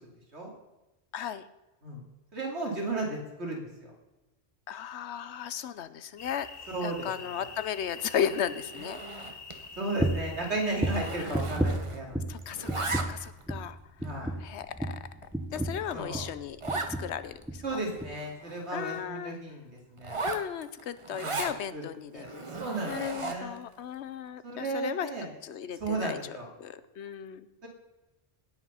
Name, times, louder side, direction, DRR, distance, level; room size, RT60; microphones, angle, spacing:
voice 1, 1.1-1.4 4.7-6.5 6.8-9.0 11.2-11.4 12.3-13.8 14.4-15.0 15.5-16.6 17.0-17.8 18.7-19.4 20.2-22.4 22.9-25.1 25.4-27.5, left 9 dB, 80° left, 14 dB, 0.9 m, -35 dB
voice 2, 2.3-3.9 6.7-7.5 9.8-12.3 14.0-14.3 15.9-16.2 17.6-20.2 21.2-21.5 21.7-21.8 22.1-22.3 22.6-23.6 24.4-25.3 25.8-26.5 27.6-27.7, right 2 dB, 80° right, 0 dB, 2.8 m, -34 dB
sound 1, 6.2-11.3, left 4 dB, 40° left, 0.9 m, -46 dB
Zipper (clothing), 8.6-9.7 10.0-10.2 10.4-12.1 12.4-13.4 14.0-14.1 14.7-14.8 15.2-15.3 15.6-15.7 15.9-16.0 16.6-17.0 17.4-17.5 17.7-19.0 20.0-21.6 22.2-23.6, right 3 dB, 30° right, 0.9 m, -37 dB
sound 2, 10.0-10.4 10.8-12.4 12.7-13.2 13.5-13.7 14.0-16.4 16.7-17.1 17.4-17.7 18.0-18.1, right 1 dB, 5° right, 0.6 m, -32 dB
17.0 x 6.0 x 5.6 m, 1.0 s
omnidirectional pair, 1.1 m